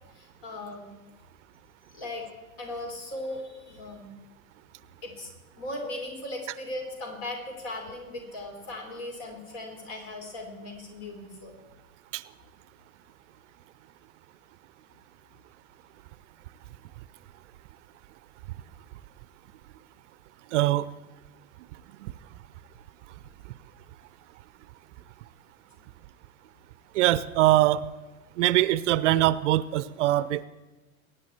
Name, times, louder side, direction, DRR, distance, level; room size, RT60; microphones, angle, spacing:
voice 1, 0.1-0.9 1.9-2.3 2.6-4.1 5.0-5.3 5.6-11.5, left 1 dB, 55° left, 2 dB, 4.1 m, -38 dB
voice 2, 20.5-20.9 22.0-22.1 26.9-27.8 28.4-30.4, right 15 dB, 55° right, 17 dB, 0.6 m, -22 dB
22.5 x 9.8 x 4.4 m, 1.1 s
figure-of-eight pair, 80°, 42 cm